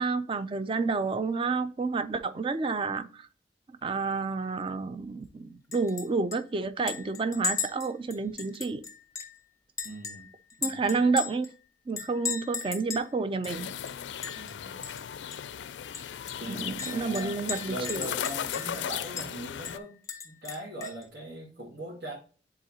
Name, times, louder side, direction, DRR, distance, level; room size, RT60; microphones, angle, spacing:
voice 1, 0.0-3.2 3.8-8.8 10.6-11.5 11.9-13.7 16.4-18.1, right 4 dB, 30° right, 0.4 m, -30 dB
Chink clink, 5.7-6.1 6.3-6.4 6.9-9.4 9.8-11.5 12.0-13.1 13.4-13.5 13.9-14.5 14.8-15.0 15.3-15.4 15.9-18.8 19.2-19.3 19.6-21.0, left 6 dB, 20° left, 0.7 m, -36 dB
voice 2, 9.8-10.3 10.6-11.0 14.3-14.8 16.4-17.3 17.6-20.0 20.2-22.2, right 1 dB, 70° right, 2.3 m, -40 dB
sound 1, 13.5-19.8, left 9 dB, 85° left, 0.4 m, -37 dB
10.0 x 3.9 x 2.8 m
head